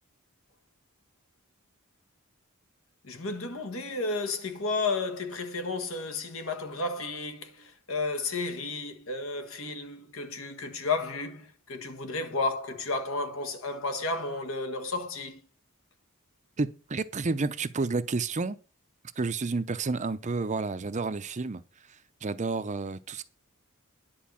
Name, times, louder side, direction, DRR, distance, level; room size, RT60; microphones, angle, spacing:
voice 1, 3.0-15.4, left 3 dB, 65° left, 1.6 m, -32 dB
voice 2, 16.6-18.6 19.2-21.6 22.2-23.2, right 3 dB, 35° right, 0.6 m, -30 dB
10.5 x 4.6 x 7.3 m
head